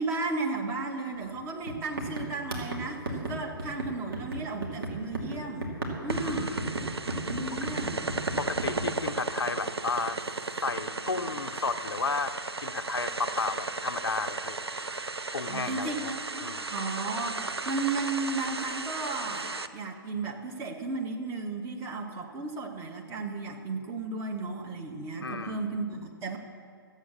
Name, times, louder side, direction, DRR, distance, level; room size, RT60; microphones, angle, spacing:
voice 1, 0.0-5.7 6.0-6.6 7.2-8.1 14.7-14.9 15.5-16.5 16.7-17.4 17.6-26.4, right 3 dB, 20° right, 1 dB, 1.3 m, -34 dB
sound 1, 1.2-1.4 1.7-8.9, right 2 dB, 65° right, 2.6 m, -34 dB
sound 2, 6.1-19.7, right 3 dB, 85° right, 0.6 m, -35 dB
voice 2, 6.2-6.6 7.5-7.6 8.4-10.2 10.6-12.3 12.6-14.6 15.3-16.1 16.4-16.7 25.2-25.7, left 4 dB, 75° left, 9 dB, 0.7 m, -33 dB
14.0 x 8.0 x 6.9 m, 2.2 s
figure-of-eight pair, 125°, 13 cm